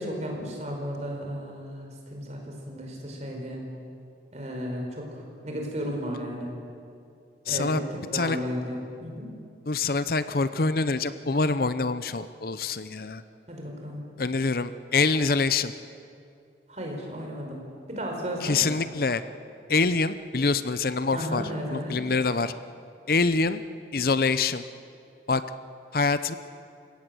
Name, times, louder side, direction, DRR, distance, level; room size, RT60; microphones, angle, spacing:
voice 1, 0.0-3.7 4.3-6.5 7.5-7.9 8.1-9.3 13.5-14.0 16.7-17.6 17.9-18.7 21.1-22.0, equal, 40° right, 1 dB, 4.8 m, -34 dB
voice 2, 7.5-7.8 8.1-8.4 9.7-13.2 14.2-15.7 18.4-19.2 19.7-21.4 21.7-22.5 23.1-23.6 23.9-24.6 25.3-25.4 25.9-26.4, left 4 dB, 55° left, 13 dB, 0.7 m, -25 dB
29.5 x 17.0 x 7.8 m, 2.5 s
head